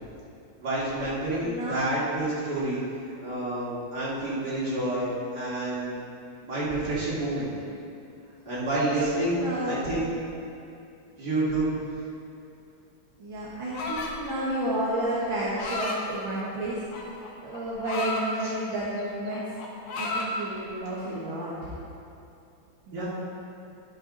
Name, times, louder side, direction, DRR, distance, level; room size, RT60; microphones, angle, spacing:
voice 1, 0.6-2.8 3.2-6.0 6.4-7.5 8.4-10.1 11.2-11.7 18.4-18.5 22.9-23.1, right 2 dB, 50° right, -9 dB, 3.0 m, -28 dB
voice 2, 1.4-1.8 8.9-9.8 13.2-16.8 17.1-19.4 19.9-21.7 22.9-23.1, right 1 dB, 65° right, -8 dB, 2.1 m, -31 dB
sound 1, 13.7-14.3 15.3-16.0 16.9-18.2 18.7-19.0 19.3-20.3, left 3 dB, 85° left, 2.0 m, -32 dB
12.0 x 7.1 x 3.9 m, 2.6 s
omnidirectional pair, 2.4 m